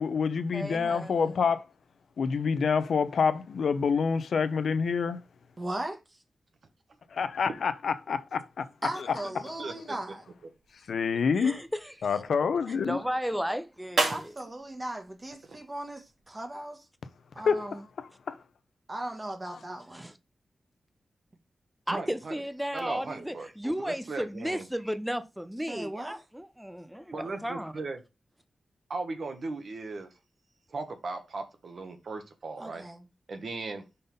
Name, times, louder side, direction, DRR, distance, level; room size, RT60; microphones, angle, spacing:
voice 1, 0.0-1.6 2.2-5.2 7.1-8.7 9.4-9.5 10.9-11.6 12.0-13.0 17.4-18.4, left 5 dB, 80° left, 0.6 m, -27 dB
voice 2, 0.5-1.3 11.4-12.2 12.7-14.3 19.9-20.1 21.9-27.8, equal, 5° right, 0.6 m, -34 dB
voice 3, 5.6-6.2 8.8-10.2 14.1-16.8 17.3-17.8 18.9-20.1 25.7-26.1 32.6-33.0, right 1 dB, 25° right, 1.4 m, -37 dB
voice 4, 9.6-10.0 15.5-15.6 21.9-22.4 22.7-24.6 27.1-28.0 28.9-30.1 30.7-32.8 33.3-33.8, right 3 dB, 60° right, 1.3 m, -37 dB
sound 1, 10.3-16.3, right 3 dB, 80° right, 2.0 m, -37 dB
5.4 x 4.0 x 5.3 m
wide cardioid pair, 135°, 0 cm